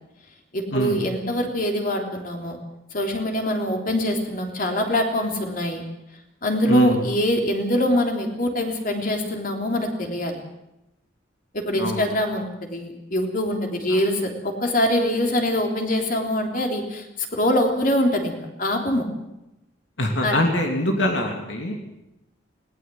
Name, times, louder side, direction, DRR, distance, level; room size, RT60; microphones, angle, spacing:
voice 1, 0.5-2.6 2.9-5.8 6.4-10.4 11.5-17.0 17.3-19.1 20.2-20.4, equal, 50° left, 2 dB, 3.6 m, -24 dB
voice 2, 6.7-7.0 11.8-12.0 20.0-21.8, left 1 dB, 80° left, 2 dB, 2.9 m, -23 dB
20.5 x 18.0 x 7.8 m, 0.88 s
head